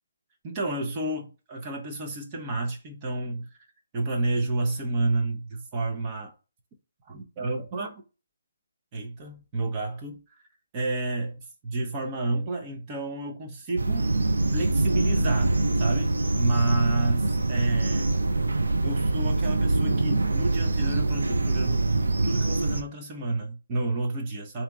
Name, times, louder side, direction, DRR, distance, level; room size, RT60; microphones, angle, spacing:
voice 1, 0.4-3.5 3.9-6.3 7.1-7.9 8.9-10.2 10.7-14.1 14.5-18.1 18.8-21.8 22.2-24.6, right 2 dB, 25° right, 0.9 m, -30 dB
sound 1, 13.8-22.8, right 2 dB, 80° right, 0.5 m, -24 dB
3.4 x 2.9 x 3.8 m
figure-of-eight pair, 145°, 0 cm